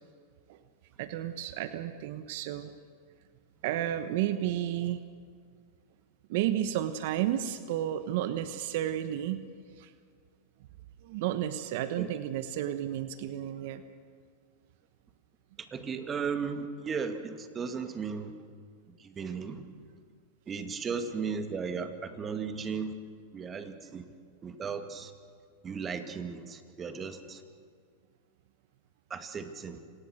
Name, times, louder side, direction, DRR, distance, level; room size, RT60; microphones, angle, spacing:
voice 1, 1.0-2.7 3.6-5.0 6.3-9.4 9.8-9.9 11.0-13.8, right 11 dB, 60° right, 11 dB, 1.1 m, -32 dB
voice 2, 15.7-18.3 19.0-19.6 20.5-22.9 23.3-24.0 24.4-25.1 25.6-27.4 29.1-29.8, right 5 dB, 25° right, 8 dB, 2.1 m, -36 dB
26.0 x 19.0 x 6.6 m, 2.1 s
hypercardioid pair, 115°, 0 cm